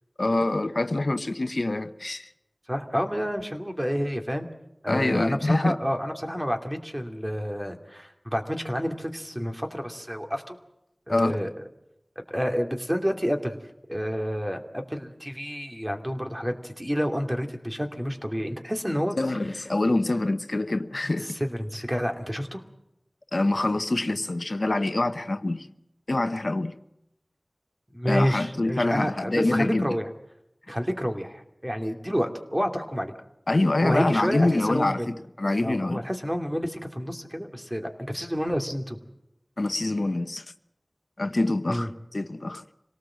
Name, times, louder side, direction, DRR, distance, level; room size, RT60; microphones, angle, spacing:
voice 1, 0.2-2.3 4.9-5.8 11.1-11.5 19.2-21.4 23.3-25.7 26.1-26.7 28.1-30.0 33.5-36.0 39.6-40.4 41.2-42.7, left 2 dB, 70° left, 0.9 m, -25 dB
voice 2, 2.7-4.5 4.8-10.6 11.1-11.5 12.3-13.6 13.9-19.2 21.2-22.6 27.9-30.1 30.7-33.1 33.8-35.1 35.6-39.0 41.7-41.9, equal, 15° right, 2.7 m, -29 dB
26.0 x 18.5 x 7.6 m
wide cardioid pair, 45°, 0 cm